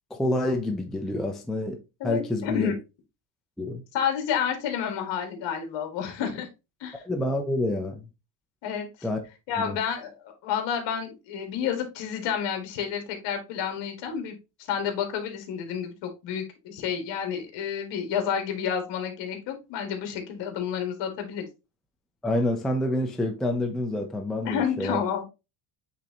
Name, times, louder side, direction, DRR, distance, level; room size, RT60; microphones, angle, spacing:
voice 1, 0.1-2.7 3.6-3.8 7.0-8.0 9.0-9.2 9.6-9.8 22.2-25.0, left 1 dB, ahead, 0.5 m, -28 dB
voice 2, 2.0-2.8 3.9-6.5 6.8-7.0 8.6-8.9 9.5-14.3 14.7-21.5 24.4-25.2, left 8 dB, 60° left, 2.1 m, -30 dB
8.6 x 3.7 x 2.9 m
cardioid pair, 150°, 48 cm